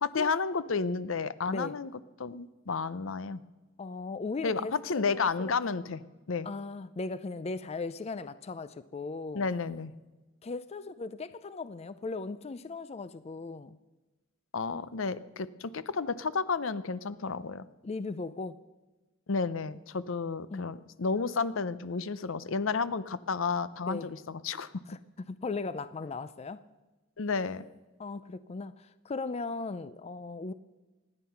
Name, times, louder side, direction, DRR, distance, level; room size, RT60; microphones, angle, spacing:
voice 1, 0.0-1.9 2.2-3.4 4.4-6.0 6.3-6.5 9.3-9.9 14.5-17.7 19.3-24.7 27.2-27.7, left 4 dB, 70° left, 16 dB, 0.6 m, -31 dB
voice 2, 3.8-5.5 6.4-9.5 10.4-13.8 17.8-18.6 20.5-20.8 23.9-24.1 24.9-26.6 28.0-30.5, left 3 dB, 30° left, 14 dB, 0.4 m, -38 dB
25.0 x 9.9 x 5.8 m, 1.2 s
head